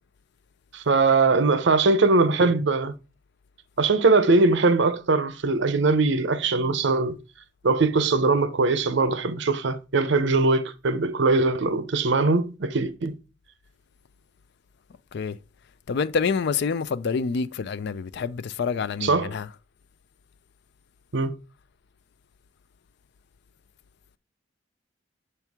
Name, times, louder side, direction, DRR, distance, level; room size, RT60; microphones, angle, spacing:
voice 1, 0.7-2.9 3.8-7.2 7.6-13.2 19.0-19.3 21.1-21.4, right 3 dB, 70° right, 0.7 m, -21 dB
voice 2, 15.9-19.5, left 5 dB, 60° left, 0.4 m, -27 dB
6.9 x 4.4 x 3.5 m
head